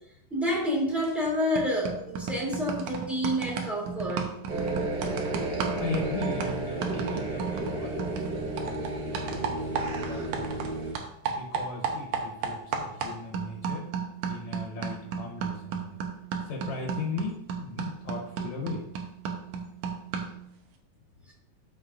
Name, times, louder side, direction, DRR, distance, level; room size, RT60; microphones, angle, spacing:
voice 1, 0.3-4.3, equal, ahead, -5 dB, 2.4 m, -28 dB
sound 1, 1.0-1.3 1.6-10.7 11.0-20.4, right 6 dB, 90° right, 2.3 m, -34 dB
sound 2, 4.5-10.9, right 2 dB, 55° right, 1.3 m, -32 dB
voice 2, 5.8-10.7 11.3-13.9 14.3-16.0 16.4-18.9, left 3 dB, 70° left, 0 dB, 2.3 m, -38 dB
13.0 x 5.3 x 2.6 m, 0.78 s
omnidirectional pair, 3.4 m